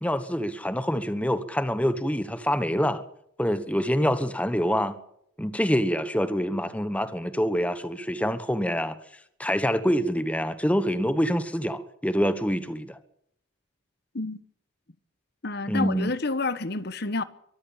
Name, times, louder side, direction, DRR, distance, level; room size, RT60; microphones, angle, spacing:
voice 1, 0.0-3.0 3.4-5.0 5.4-9.0 9.4-13.0 15.7-16.1, equal, 5° left, 1.2 m, -26 dB
voice 2, 15.4-17.2, left 3 dB, 55° left, 1.1 m, -29 dB
23.5 x 14.0 x 8.8 m
head